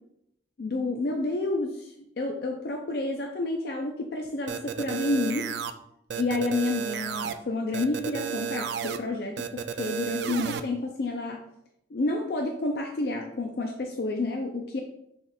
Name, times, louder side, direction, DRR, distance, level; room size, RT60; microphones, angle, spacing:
voice 1, 0.6-5.5 6.1-11.4 11.9-14.8, left 2 dB, 65° left, 2 dB, 0.4 m, -30 dB
sound 1, 4.5-5.7 6.1-7.3 7.7-9.0 9.4-10.6, right 8 dB, 75° right, 0.3 m, -32 dB
6.1 x 3.8 x 2.3 m, 0.78 s
head